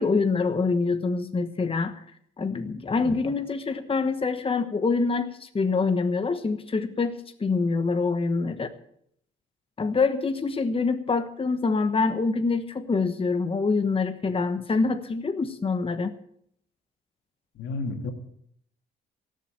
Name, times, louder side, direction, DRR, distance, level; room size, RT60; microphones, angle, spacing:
voice 1, 0.0-2.0 2.4-8.7 9.8-16.2, left 4 dB, 30° left, 8 dB, 1.2 m, -25 dB
voice 2, 17.5-18.1, left 3 dB, 80° left, 5 dB, 2.4 m, -31 dB
17.5 x 7.6 x 9.0 m, 0.69 s
cardioid pair, 90°, 20 cm